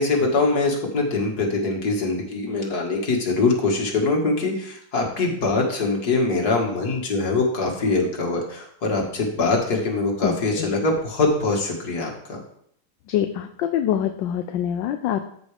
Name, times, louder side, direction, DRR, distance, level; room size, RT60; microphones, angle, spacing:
voice 1, 0.0-12.4, left 3 dB, 55° left, 0 dB, 2.3 m, -23 dB
voice 2, 10.2-10.7 13.1-15.2, left 10 dB, 75° left, 7 dB, 1.3 m, -25 dB
13.5 x 6.2 x 3.4 m, 0.67 s
omnidirectional pair, 2.1 m